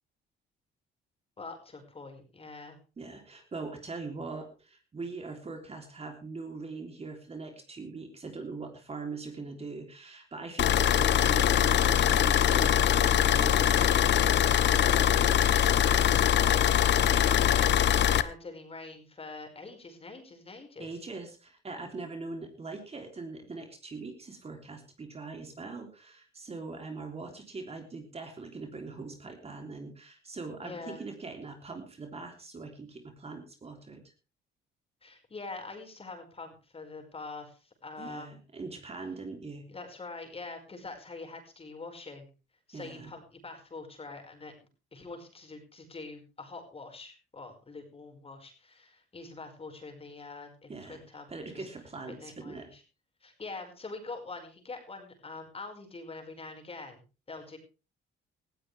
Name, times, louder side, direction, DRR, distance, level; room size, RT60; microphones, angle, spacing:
voice 1, 1.4-2.8 16.3-21.0 30.6-31.0 35.0-38.4 39.7-42.3 42.7-44.5 44.9-51.3 51.5-51.7 52.2-52.8 53.2-57.0 57.3-57.6, left 3 dB, 25° left, 4 dB, 5.4 m, -44 dB
voice 2, 3.0-15.5 20.8-34.0 38.0-39.7 42.7-43.1 50.7-52.7, right 3 dB, 30° right, 4 dB, 3.4 m, -42 dB
sound 1, 10.6-18.2, left 10 dB, 55° left, 1.0 m, -23 dB
18.5 x 15.0 x 3.5 m, 0.33 s
cardioid pair, 110°, 21 cm